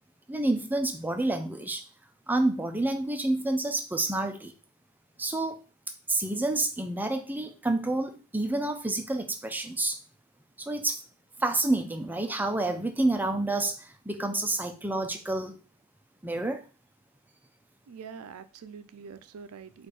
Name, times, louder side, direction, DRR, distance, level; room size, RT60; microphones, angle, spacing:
voice 1, 0.3-1.8 2.3-4.5 5.2-5.6 6.1-10.0 10.6-11.0 11.4-15.6 16.2-16.6, right 2 dB, 10° right, 6 dB, 0.4 m, -29 dB
voice 2, 17.9-19.9, right 6 dB, 85° right, 12 dB, 0.4 m, -45 dB
4.3 x 2.5 x 4.8 m, 0.35 s
head